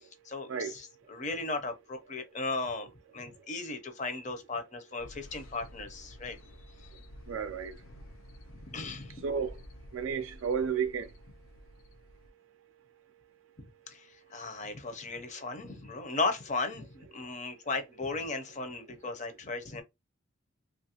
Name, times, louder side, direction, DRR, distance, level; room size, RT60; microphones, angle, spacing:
voice 1, 0.0-6.4 6.8-6.9 8.7-9.2 13.6-19.8, left 3 dB, 35° left, 0.6 m, -36 dB
sound 1, 5.0-12.3, equal, 90° left, 0.6 m, -51 dB
voice 2, 7.3-7.7 9.2-9.5 9.9-11.1, right 6 dB, 75° right, 0.4 m, -31 dB
3.0 x 2.4 x 2.8 m
head